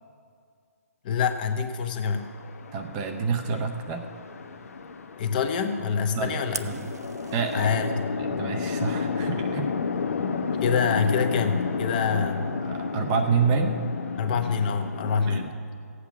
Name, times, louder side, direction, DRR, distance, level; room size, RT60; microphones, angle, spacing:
voice 1, 1.0-2.3 5.2-6.7 7.5-8.1 10.6-12.5 14.2-15.5, left 6 dB, 35° left, 7 dB, 0.9 m, -26 dB
Chatter / Traffic noise roadway noise / Train, 2.0-15.5, left 5 dB, 60° left, 1.0 m, -32 dB
voice 2, 2.7-4.1 6.1-6.9 7.3-7.7 8.2-9.7 12.6-13.8 15.2-15.5, right 5 dB, 20° right, 5 dB, 0.6 m, -28 dB
Fire, 6.5-7.7, right 5 dB, 75° right, 0.7 m, -39 dB
15.5 x 8.4 x 5.8 m, 2.3 s
hypercardioid pair, 155°, 9 cm